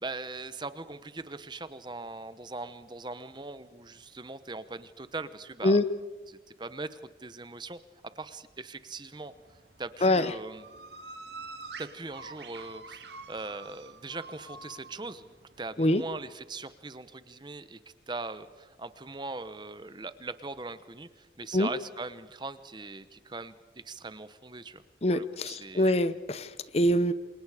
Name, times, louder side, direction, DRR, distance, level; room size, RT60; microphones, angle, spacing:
voice 1, 0.0-5.8 6.3-7.8 8.2-9.3 9.8-10.7 11.8-13.0 13.3-17.8 18.1-23.5 23.8-24.8 25.1-25.9, right 3 dB, 25° right, 13 dB, 0.9 m, -40 dB
sound 1, 9.2-16.3, right 3 dB, 70° right, 2.0 m, -47 dB
voice 2, 10.0-10.3 15.8-16.0 21.5-21.7 25.0-27.1, left 1 dB, 35° left, 14 dB, 0.8 m, -24 dB
28.0 x 27.0 x 5.0 m, 1.3 s
head